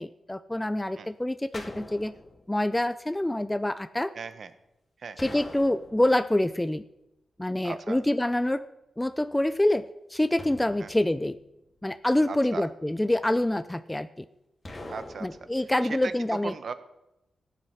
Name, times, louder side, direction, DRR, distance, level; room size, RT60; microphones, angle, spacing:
voice 1, 0.0-2.2 2.5-4.1 5.2-6.8 7.4-8.7 9.0-11.4 11.8-14.1 15.2-16.5, left 1 dB, 10° left, 12 dB, 0.5 m, -26 dB
sound 1, 1.5-2.7 5.2-6.5 10.4-11.8 14.6-15.6, left 2 dB, 35° left, 2.2 m, -44 dB
voice 2, 4.1-4.5 5.0-5.2 7.6-8.0 10.8-10.9 12.3-12.6 14.9-15.4 15.8-16.7, right 5 dB, 65° right, 12 dB, 1.0 m, -37 dB
16.5 x 8.5 x 5.8 m, 0.91 s
cardioid pair, 85°, 0 cm